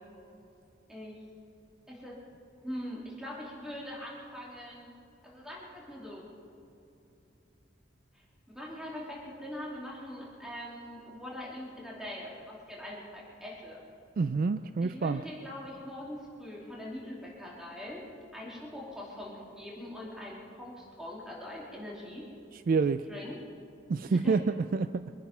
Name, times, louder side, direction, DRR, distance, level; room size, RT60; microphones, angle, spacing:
voice 1, 0.9-1.2 1.9-2.2 2.6-4.9 5.2-6.2 8.1-13.8 14.8-18.1 18.3-22.3 23.1-23.4 24.1-24.4, left 1 dB, 5° right, -5 dB, 2.7 m, -42 dB
voice 2, 14.2-15.2 22.5-23.1 23.9-25.1, right 4 dB, 50° right, 12 dB, 0.3 m, -28 dB
23.5 x 10.5 x 5.6 m, 2.7 s
head